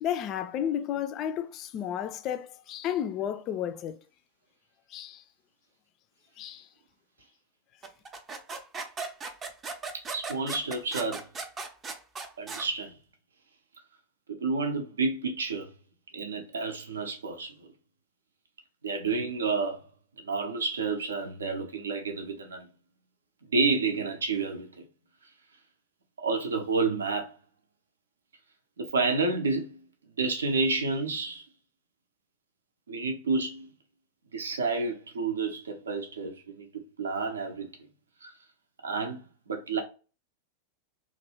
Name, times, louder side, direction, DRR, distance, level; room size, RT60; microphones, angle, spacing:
voice 1, 0.0-3.9 4.9-5.2 6.4-6.7, left 10 dB, 35° left, 0.3 m, -32 dB
sound 1, 7.8-12.7, right 4 dB, 20° right, 0.5 m, -37 dB
voice 2, 10.1-11.2 12.4-12.9 14.3-15.7 16.1-17.7 18.8-19.8 20.2-22.7 23.5-24.8 26.2-27.3 28.8-29.8 30.2-31.4 32.9-33.7 34.3-36.7 37.0-37.7 38.2-38.3 38.8-39.2 39.5-39.8, right 4 dB, 70° right, 0.6 m, -30 dB
2.9 x 2.5 x 2.9 m
figure-of-eight pair, 90°, 0 cm